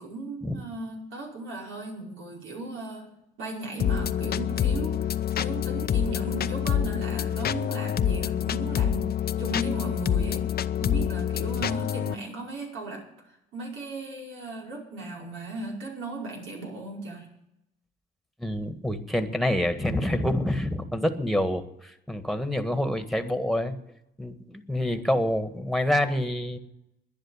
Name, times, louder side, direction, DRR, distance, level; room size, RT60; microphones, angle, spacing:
voice 1, 0.0-3.0 3.4-9.1 9.4-10.5 10.8-17.3, right 2 dB, 85° right, -1 dB, 5.2 m, -36 dB
sound 1, 3.8-12.1, left 9 dB, 50° left, 0.6 m, -27 dB
voice 2, 18.4-23.8 24.2-26.6, left 1 dB, ahead, 8 dB, 1.7 m, -27 dB
10.5 x 10.5 x 10.0 m, 0.82 s
cardioid pair, 90°, 20 cm